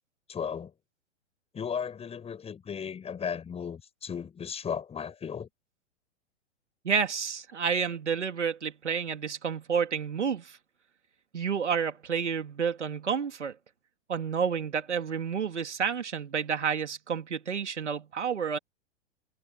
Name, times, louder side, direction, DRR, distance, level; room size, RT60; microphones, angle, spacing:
voice 1, 0.3-0.7 1.5-5.5, left 7 dB, 15° left, 6.3 m, -35 dB
voice 2, 6.8-10.6 11.3-13.5 14.1-18.6, right 6 dB, 80° right, 3.2 m, -30 dB
figure-of-eight pair, 110°, 35 cm